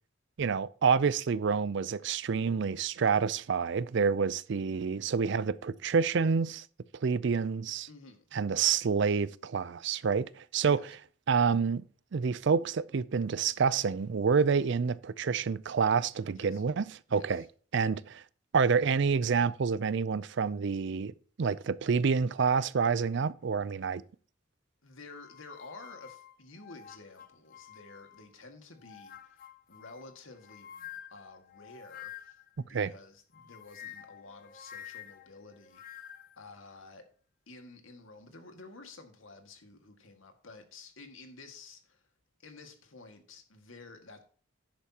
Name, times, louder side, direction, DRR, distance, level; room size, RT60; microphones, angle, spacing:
voice 1, 0.4-6.6 7.0-7.9 8.3-10.8 11.3-11.8 12.1-17.4 17.7-18.2 18.5-21.1 21.4-24.0 32.7-32.9, right 5 dB, 60° right, 0.4 m, -28 dB
voice 2, 7.9-8.3 10.6-10.8 16.4-16.6 17.1-17.5 24.8-36.1 36.4-37.0 37.5-42.0 42.4-44.2, left 3 dB, 80° left, 1.9 m, -51 dB
sound 1, 25.1-28.4 28.8-32.5 33.3-36.4, left 10 dB, 45° left, 0.7 m, -49 dB
11.5 x 10.5 x 2.9 m
head